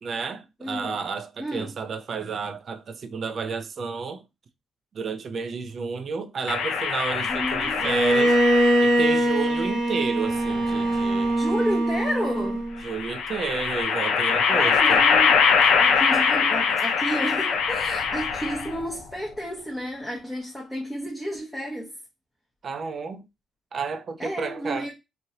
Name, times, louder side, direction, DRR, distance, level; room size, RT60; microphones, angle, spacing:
voice 1, 0.0-4.2 4.9-8.4 8.8-11.4 12.8-15.1 22.6-23.2 23.7-24.9, right 5 dB, 50° right, 0.4 m, -31 dB
voice 2, 0.6-0.9 1.4-1.7 7.3-7.8 11.4-12.6 14.5-15.4 15.8-21.9 24.2-24.9, equal, 5° left, 0.9 m, -31 dB
sound 1, 6.5-9.1 10.3-11.3 12.9-18.9, left 6 dB, 80° left, 0.6 m, -23 dB
Bowed string instrument, 7.8-12.8, right 1 dB, 80° right, 1.1 m, -22 dB
3.0 x 2.5 x 2.7 m
cardioid pair, 90°, 0 cm